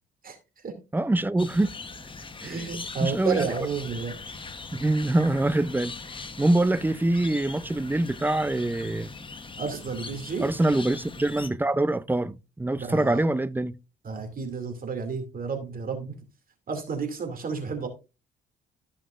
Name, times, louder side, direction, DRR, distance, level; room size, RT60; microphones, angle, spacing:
voice 1, 0.9-1.7 2.4-2.6 3.0-3.5 4.7-6.0 6.4-9.1 10.4-13.7, right 2 dB, 10° right, 0.5 m, -24 dB
sound 1, 1.4-11.5, left 4 dB, 25° left, 1.0 m, -41 dB
voice 2, 2.4-4.4 9.6-10.5 12.8-13.2 14.0-16.2 16.7-17.9, right 5 dB, 45° right, 2.5 m, -31 dB
14.5 x 5.7 x 2.5 m
cardioid pair, 90°, 20 cm